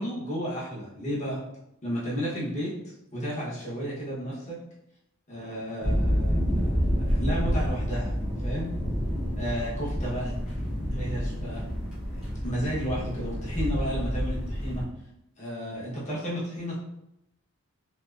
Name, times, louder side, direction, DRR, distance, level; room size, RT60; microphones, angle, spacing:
voice 1, 0.0-1.4 1.8-2.7 3.1-4.6 5.3-6.7 7.0-8.1 8.4-8.7 9.4-10.4 10.9-11.7 12.4-14.9 15.4-16.7, equal, 30° left, -6 dB, 0.7 m, -32 dB
sound 1, 5.8-14.8, equal, 5° right, 0.6 m, -28 dB
2.5 x 2.2 x 2.3 m, 0.82 s
head